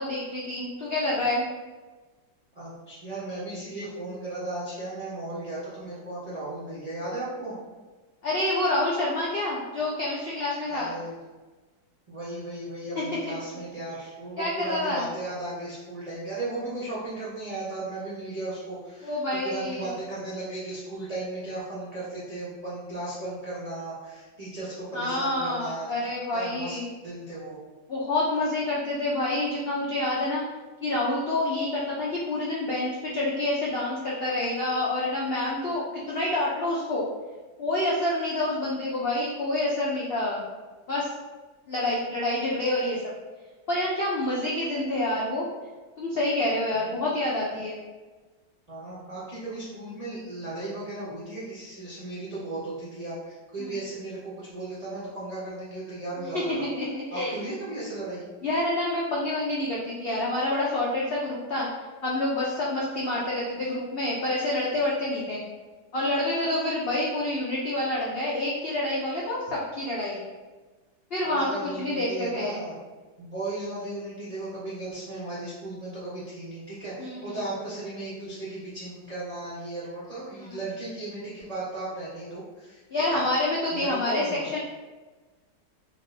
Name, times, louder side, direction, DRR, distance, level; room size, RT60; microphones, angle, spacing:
voice 1, 0.0-1.4 8.2-10.9 13.5-13.6 14.4-15.1 19.0-19.9 24.9-26.9 27.9-30.4 30.8-37.1 37.6-40.4 40.9-41.1 41.7-43.0 43.7-45.5 46.0-47.8 53.6-53.7 56.3-57.4 58.4-61.7 62.0-65.4 65.9-70.2 71.1-72.6 77.0-77.4 80.4-80.6 82.9-84.6, left 1 dB, 90° left, -5 dB, 0.5 m, -27 dB
voice 2, 2.6-7.6 10.6-11.1 12.1-19.2 19.4-25.9 26.3-27.6 48.7-56.7 57.1-58.2 71.2-72.7 73.2-82.8 83.1-83.2 83.7-84.6, right 2 dB, 50° right, -10 dB, 0.4 m, -36 dB
4.0 x 2.6 x 2.6 m, 1.3 s
omnidirectional pair, 1.8 m